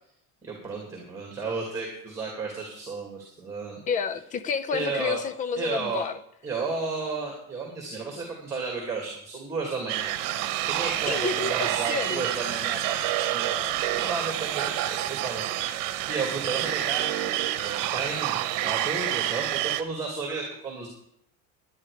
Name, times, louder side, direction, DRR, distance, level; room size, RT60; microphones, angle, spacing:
voice 1, 0.4-3.8 4.7-5.2 5.6-6.0 6.4-10.2 10.6-15.7 16.0-17.3 17.6-20.9, right 4 dB, 10° right, 0 dB, 2.5 m, -33 dB
voice 2, 3.9-6.2 11.0-12.3, left 5 dB, 20° left, 14 dB, 0.5 m, -30 dB
sound 1, 9.9-19.8, right 13 dB, 55° right, 1.2 m, -28 dB
11.0 x 11.0 x 5.0 m, 0.70 s
cardioid pair, 160°, 38 cm